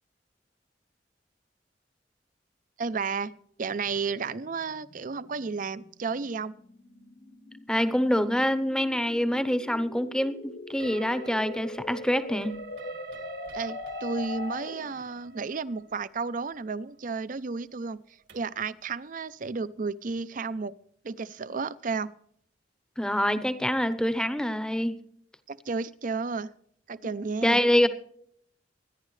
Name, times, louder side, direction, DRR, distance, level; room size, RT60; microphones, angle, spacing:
voice 1, 2.8-6.6 13.5-18.0 18.3-20.7 21.0-22.1 25.5-26.5 26.9-27.6, right 4 dB, 50° right, 16 dB, 0.5 m, -32 dB
sound 1, 3.7-15.0, left 2 dB, 50° left, 1.1 m, -42 dB
voice 2, 7.7-12.5 23.0-24.9 27.4-27.9, equal, 5° left, 12 dB, 0.8 m, -25 dB
sound 2, 10.8-18.6, right 4 dB, 75° right, 2.0 m, -47 dB
24.5 x 10.5 x 3.2 m, 0.66 s
head